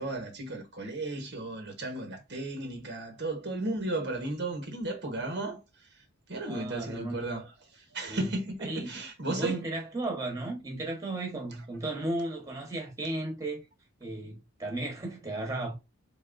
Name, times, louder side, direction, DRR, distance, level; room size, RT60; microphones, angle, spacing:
voice 1, 0.0-5.6 6.3-9.6, right 2 dB, 50° right, 1.0 m, -34 dB
voice 2, 6.5-7.3 8.0-8.3 8.6-9.0 9.3-13.6 14.0-15.7, right 2 dB, 15° right, 1.2 m, -35 dB
3.9 x 3.7 x 2.5 m
head